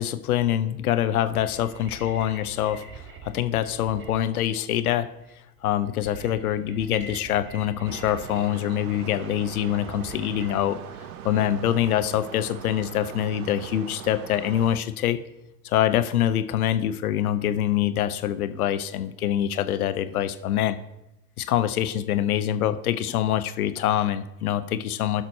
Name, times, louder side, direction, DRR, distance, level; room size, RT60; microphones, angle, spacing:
voice 1, 0.0-2.8 3.2-5.1 5.6-10.8 11.2-15.2 15.6-20.8 21.4-25.2, left 11 dB, 85° left, 11 dB, 0.7 m, -25 dB
sound 1, 1.1-10.6, right 3 dB, 25° right, 1.8 m, -45 dB
sound 2, 7.9-14.8, right 9 dB, 85° right, 0.7 m, -41 dB
16.0 x 5.8 x 3.0 m, 0.89 s
hypercardioid pair, 70°, 43 cm